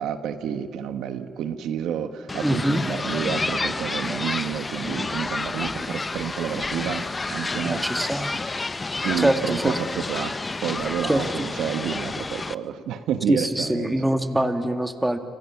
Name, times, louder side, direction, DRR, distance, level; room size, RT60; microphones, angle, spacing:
voice 1, 0.0-8.2 9.0-13.9, right 8 dB, 80° right, 8 dB, 1.3 m, -29 dB
sound 1, 2.3-12.6, left 3 dB, 25° left, 0.7 m, -30 dB
voice 2, 2.4-2.8 7.6-8.3 9.2-9.7 11.1-11.5 13.3-15.2, right 1 dB, 10° right, 6 dB, 2.0 m, -24 dB
30.0 x 27.5 x 5.9 m, 2.3 s
cardioid pair, 85°, 0 cm